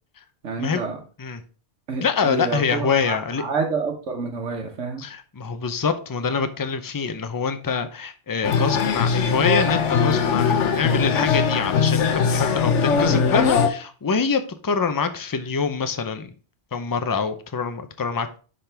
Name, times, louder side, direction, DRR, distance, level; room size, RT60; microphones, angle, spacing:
voice 1, 0.4-1.0 1.9-5.0, right 4 dB, 80° right, 3 dB, 1.3 m, -28 dB
voice 2, 2.0-3.4 5.0-16.3 16.7-18.4, left 5 dB, 30° left, 9 dB, 0.4 m, -25 dB
sound 1, 8.4-13.7, left 6 dB, 80° left, 1.1 m, -21 dB
10.0 x 3.8 x 3.3 m, 0.38 s
omnidirectional pair, 1.2 m